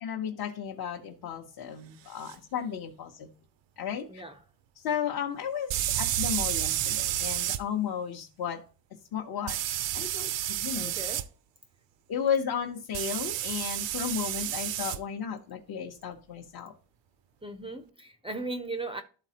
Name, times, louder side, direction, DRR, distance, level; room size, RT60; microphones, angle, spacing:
voice 1, 0.0-3.3 3.8-4.2 4.8-8.6 9.1-10.9 12.1-16.7, left 8 dB, 55° left, 0.9 m, -34 dB
sound 1, 2.3-2.4 5.7-7.6 9.5-11.2 12.9-15.0, right 12 dB, 80° right, 0.6 m, -30 dB
voice 2, 4.1-4.4 10.7-11.3 17.4-19.0, right 2 dB, 15° right, 0.4 m, -37 dB
12.5 x 4.1 x 2.8 m
wide cardioid pair, 170°, 44 cm